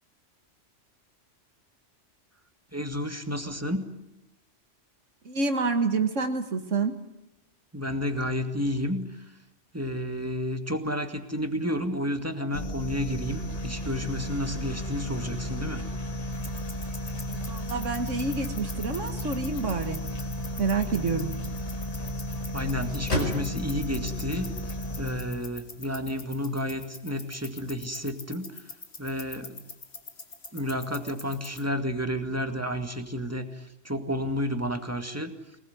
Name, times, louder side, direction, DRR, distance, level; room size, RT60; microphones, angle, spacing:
voice 1, 2.7-3.9 7.7-9.3 9.7-15.8 22.5-24.5 25.0-28.7 29.0-29.6 30.5-35.3, equal, 10° right, 6 dB, 2.1 m, -31 dB
voice 2, 5.2-7.0 17.3-20.0 20.6-21.3, right 4 dB, 80° right, 7 dB, 2.0 m, -28 dB
sound 1, 12.5-25.5, equal, 30° left, 2.4 m, -34 dB
sound 2, 16.3-31.7, left 4 dB, 55° left, 2.1 m, -45 dB
sound 3, 19.6-25.7, left 1 dB, 80° left, 5.1 m, -38 dB
24.0 x 19.5 x 9.5 m, 0.91 s
omnidirectional pair, 1.3 m